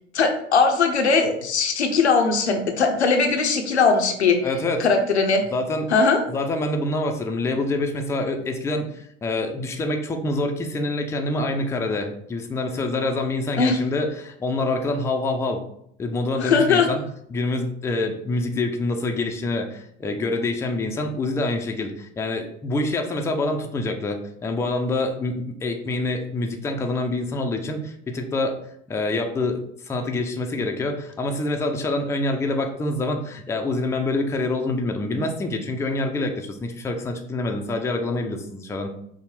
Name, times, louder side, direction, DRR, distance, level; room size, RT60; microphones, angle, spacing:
voice 1, 0.1-4.4 4.8-5.4 5.9-6.2 13.6-13.7 16.4-16.9, left 4 dB, 85° left, 5 dB, 0.6 m, -19 dB
voice 2, 4.4-4.9 5.5-5.9 6.3-15.6 16.0-17.0 17.3-24.2 24.4-28.6 28.9-38.9, left 2 dB, 10° left, 3 dB, 0.4 m, -26 dB
5.5 x 2.1 x 3.1 m, 0.71 s
figure-of-eight pair, 75°, 33 cm